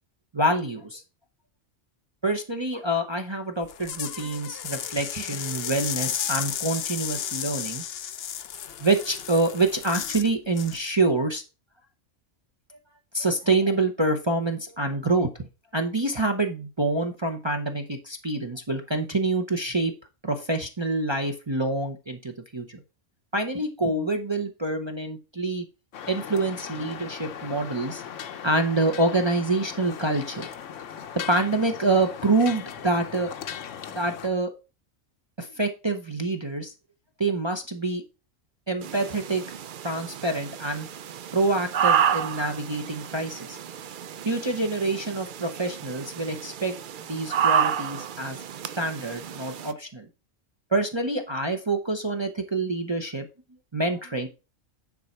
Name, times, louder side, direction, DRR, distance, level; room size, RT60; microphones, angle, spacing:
voice 1, 0.3-1.0 2.2-7.8 8.8-11.4 12.7-12.8 13.1-15.5 15.7-19.9 20.2-22.8 23.3-25.6 26.1-28.0 28.4-30.5 31.3-33.3 33.9-34.5 35.4-36.7 37.2-38.0 38.7-39.4 39.8-40.9 41.3-43.6 44.2-46.8 47.1-48.4 48.7-50.1 50.7-53.3 53.7-54.3, right 2 dB, 25° right, 3 dB, 0.8 m, -26 dB
sound 1, 3.6-10.3 10.6-10.9, left 9 dB, 60° left, 0.8 m, -33 dB
sound 2, 25.9-34.3, left 8 dB, 75° left, 1.1 m, -38 dB
sound 3, 38.8-49.7, right 8 dB, 60° right, 0.5 m, -30 dB
9.6 x 4.1 x 4.5 m, 0.30 s
omnidirectional pair, 1.3 m